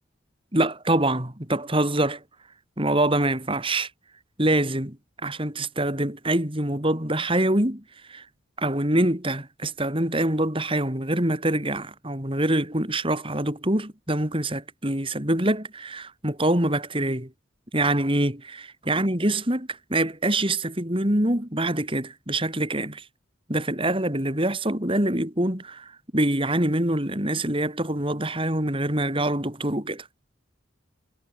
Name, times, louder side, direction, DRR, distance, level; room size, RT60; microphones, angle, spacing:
voice 1, 0.5-2.2 2.8-3.9 4.4-5.0 5.2-7.8 8.1-8.2 8.6-17.3 17.7-23.0 23.5-30.1, right 1 dB, 25° right, 4.3 m, -25 dB
head